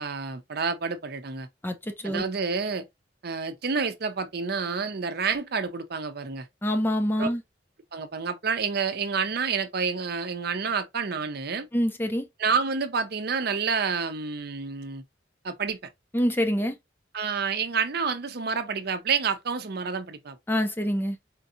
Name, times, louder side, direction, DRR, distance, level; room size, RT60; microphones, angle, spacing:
voice 1, 0.0-1.5 2.0-2.8 3.2-6.5 7.2-7.3 7.9-11.7 12.4-15.0 15.4-15.8 17.1-20.4, right 5 dB, 60° right, 0.6 m, -29 dB
voice 2, 6.6-7.4 11.7-12.2 16.1-16.7 20.5-21.2, equal, 10° left, 0.5 m, -25 dB
4.4 x 2.7 x 2.5 m
head